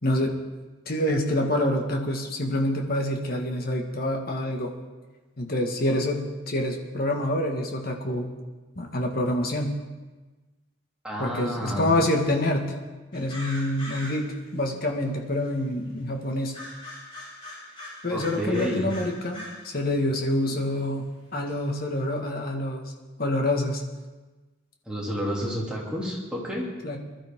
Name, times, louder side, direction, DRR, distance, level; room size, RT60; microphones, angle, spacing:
voice 1, 0.0-0.4 0.9-4.7 5.4-8.3 8.8-9.8 11.2-12.7 13.1-14.3 14.5-16.6 18.0-22.9 23.2-23.8 26.8-27.0, left 1 dB, 45° left, 2 dB, 1.8 m, -27 dB
voice 2, 11.0-11.9 18.1-18.9 20.5-20.7 24.9-26.7, equal, 5° right, -5 dB, 3.0 m, -30 dB
sound 1, 13.1-14.5 15.1-15.2 16.5-19.7 20.0-20.1 20.8-20.9 21.5-21.6, left 1 dB, 25° left, 4.9 m, -41 dB
21.0 x 12.5 x 3.7 m, 1.2 s
head